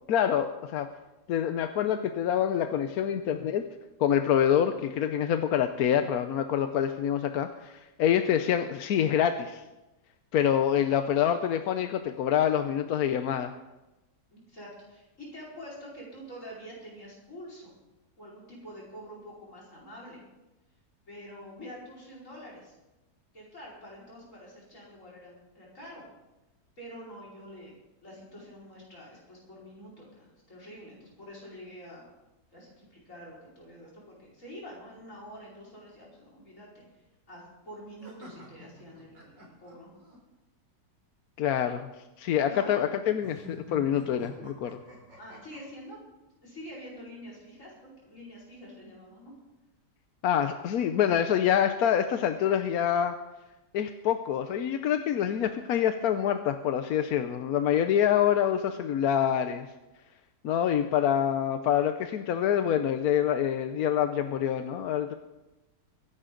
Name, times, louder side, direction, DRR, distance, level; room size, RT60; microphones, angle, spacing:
voice 1, 0.1-0.9 1.3-3.6 4.0-9.6 10.3-13.5 41.4-41.9 42.2-44.8 50.2-53.1 53.7-59.7 60.4-65.1, left 9 dB, 65° left, 8 dB, 1.1 m, -26 dB
voice 2, 14.3-17.7 18.2-20.2 21.1-22.7 23.3-26.1 26.8-27.7 28.0-32.0 32.5-36.9 37.3-39.9 42.5-43.0 45.2-46.0 46.4-49.3, equal, 40° left, -4 dB, 5.4 m, -46 dB
sound 1, 38.0-40.2 43.2-45.6, left 1 dB, 70° right, 4.7 m, -47 dB
23.5 x 11.0 x 3.9 m, 1.0 s
omnidirectional pair, 2.0 m